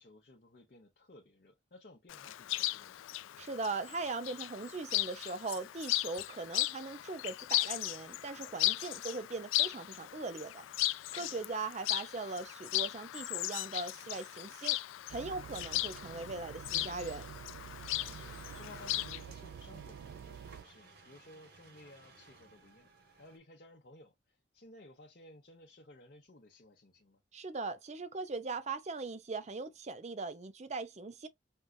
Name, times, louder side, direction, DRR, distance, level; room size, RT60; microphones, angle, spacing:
voice 1, 0.0-3.1 11.2-11.5 18.0-22.9 23.2-27.2, left 2 dB, 50° left, 0.8 m, -57 dB
Chirp tweet, 2.1-19.2, left 17 dB, 85° left, 0.3 m, -37 dB
voice 2, 3.4-14.8 15.1-17.2 27.3-31.3, right 3 dB, 35° right, 0.5 m, -40 dB
sound 1, 15.1-20.6, right 7 dB, 85° right, 0.3 m, -48 dB
sound 2, 18.0-23.4, right 3 dB, 55° right, 1.1 m, -58 dB
5.4 x 2.4 x 2.3 m
head